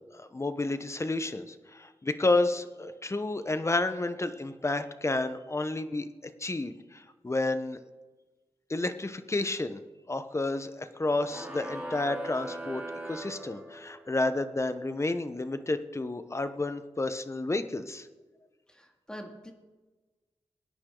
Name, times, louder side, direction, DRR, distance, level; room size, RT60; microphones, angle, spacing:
voice 1, 0.1-6.1 6.4-7.8 8.7-9.8 10.1-12.8 13.1-18.1, left 2 dB, 25° left, 10 dB, 1.0 m, -30 dB
sound 1, 11.2-14.1, right 1 dB, 10° right, 3.0 m, -40 dB
voice 2, 18.7-19.5, equal, 5° left, 2 dB, 2.5 m, -44 dB
23.5 x 9.8 x 3.9 m, 1.2 s
wide cardioid pair, 85°, 11 cm